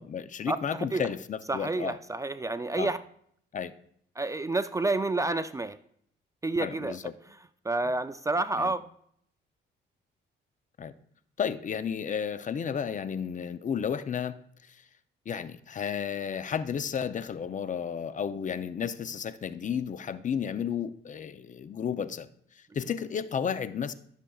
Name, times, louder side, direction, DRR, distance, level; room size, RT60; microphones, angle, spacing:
voice 1, 0.0-2.0 2.8-2.9 3.5-3.7 6.6-7.1 8.6-8.7 10.8-10.9 11.4-14.4 14.7-14.8 15.3-22.3 22.6-23.9, left 7 dB, 40° left, 13 dB, 0.5 m, -32 dB
voice 2, 1.5-3.0 4.2-5.8 6.4-7.0 7.6-8.8, right 2 dB, 15° right, 12 dB, 0.4 m, -29 dB
13.0 x 6.6 x 2.3 m, 0.66 s
cardioid pair, 90°, 20 cm